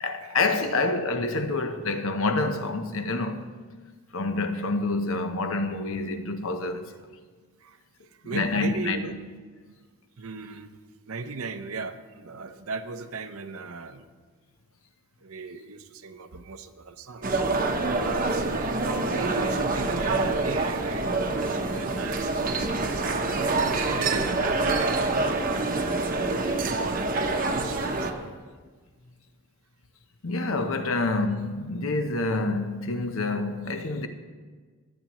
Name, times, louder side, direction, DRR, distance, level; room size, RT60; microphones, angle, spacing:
voice 1, 0.0-3.4 4.1-7.1 8.2-9.0 30.2-34.1, left 3 dB, 65° left, 0.8 m, -27 dB
voice 2, 8.2-9.1 10.2-10.8 11.1-14.1 15.2-17.4 18.0-26.2 26.6-28.3 30.9-31.0, right 4 dB, 75° right, 0.7 m, -37 dB
sound 1, 17.2-28.1, right 3 dB, 40° right, 0.8 m, -26 dB
20.5 x 8.7 x 3.0 m
head